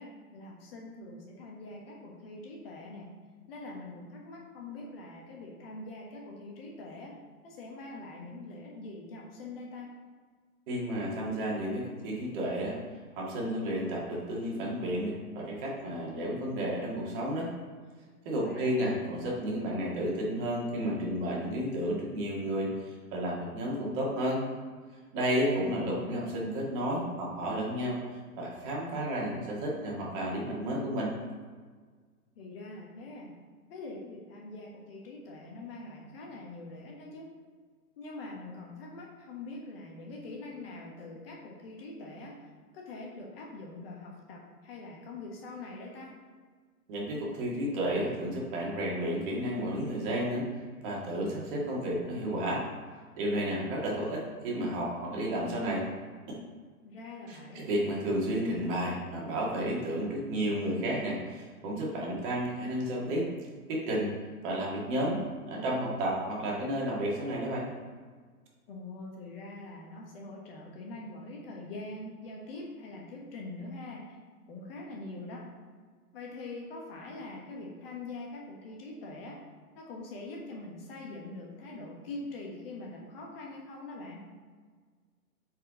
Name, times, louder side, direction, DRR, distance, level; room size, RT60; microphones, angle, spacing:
voice 1, 0.0-3.2 3.5-9.9 18.3-19.0 25.6-26.1 32.3-33.3 33.7-37.3 38.0-42.4 42.7-46.2 56.8-57.7 68.7-74.2 74.5-75.5 76.1-79.4 79.7-84.2, left 2 dB, 40° left, -2 dB, 1.4 m, -43 dB
voice 2, 10.7-12.8 13.2-17.5 18.2-24.4 25.1-28.0 28.4-31.1 46.9-50.4 50.8-52.6 53.2-55.8 56.3-56.4 57.3-63.3 63.7-64.1 64.4-65.2 65.5-67.7, equal, 35° right, -3 dB, 2.0 m, -32 dB
8.0 x 4.8 x 3.8 m, 1.5 s
figure-of-eight pair, 125°, 46 cm